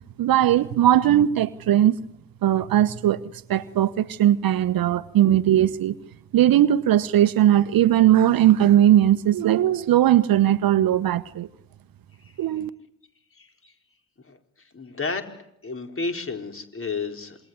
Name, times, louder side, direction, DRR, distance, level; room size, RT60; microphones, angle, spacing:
voice 1, 0.2-2.0 2.4-3.2 3.5-5.9 6.3-11.5 12.4-12.7, right 12 dB, 50° right, 15 dB, 1.2 m, -19 dB
voice 2, 13.3-13.7 14.2-14.4 14.7-15.4 15.6-17.4, left 4 dB, 30° left, 5 dB, 4.5 m, -32 dB
27.5 x 21.0 x 9.8 m, 0.74 s
hypercardioid pair, 55°, 45 cm